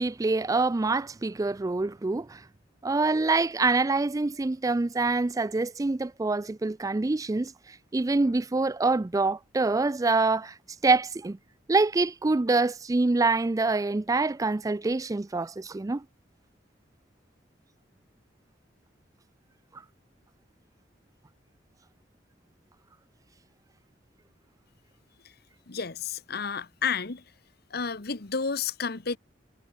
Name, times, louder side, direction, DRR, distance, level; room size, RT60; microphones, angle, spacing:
voice 1, 0.0-2.4 2.8-10.5 10.8-11.4 11.7-16.0, right 3 dB, 20° right, 0.4 m, -25 dB
voice 2, 25.7-27.2 27.7-29.2, left 5 dB, 55° left, 1.3 m, -31 dB
head